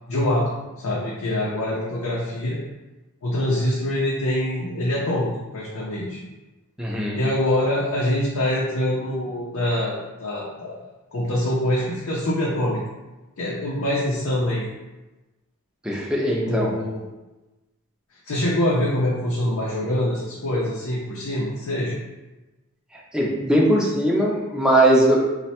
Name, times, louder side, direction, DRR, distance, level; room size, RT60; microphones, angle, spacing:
voice 1, 0.1-2.6 3.2-6.2 7.1-10.8 11.1-12.8 13.4-14.7 16.5-17.0 18.3-22.0, left 1 dB, 90° left, -6 dB, 0.6 m, -24 dB
voice 2, 6.8-7.2 15.8-16.7 22.9-25.2, right 1 dB, 5° right, -3 dB, 0.5 m, -20 dB
3.2 x 2.2 x 4.2 m, 1.1 s
head